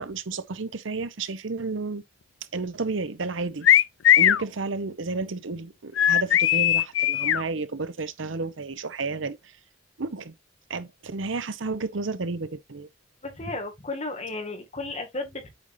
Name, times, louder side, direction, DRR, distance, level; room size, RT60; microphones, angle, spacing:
voice 1, 0.0-2.0 2.5-3.7 4.2-9.4 10.0-10.3 10.7-12.9, right 3 dB, 80° right, 0.9 m, -31 dB
sound 1, 3.6-4.4 6.0-7.4, left 11 dB, 80° left, 0.4 m, -19 dB
voice 2, 13.2-15.5, left 2 dB, 35° left, 2.1 m, -34 dB
8.1 x 5.4 x 2.7 m
head